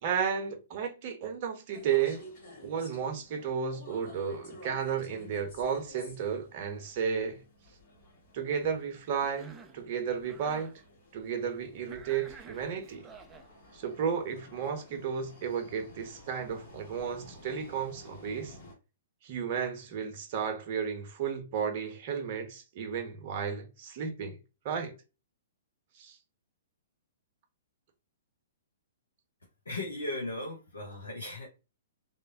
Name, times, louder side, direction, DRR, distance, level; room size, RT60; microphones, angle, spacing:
voice 1, 0.0-2.2 2.6-7.4 8.3-10.8 11.1-13.1 13.7-18.6 19.2-24.4 24.6-24.9 25.9-26.2, right 7 dB, 45° right, 0.7 m, -33 dB
sound 1, 1.7-18.7, left 1 dB, 50° left, 1.4 m, -53 dB
Cough, 9.2-9.8 10.2-10.8 11.9-13.5, right 5 dB, 15° right, 0.3 m, -51 dB
voice 2, 29.7-31.5, left 2 dB, 80° left, 0.9 m, -37 dB
3.0 x 2.1 x 2.6 m
figure-of-eight pair, 115°, 0 cm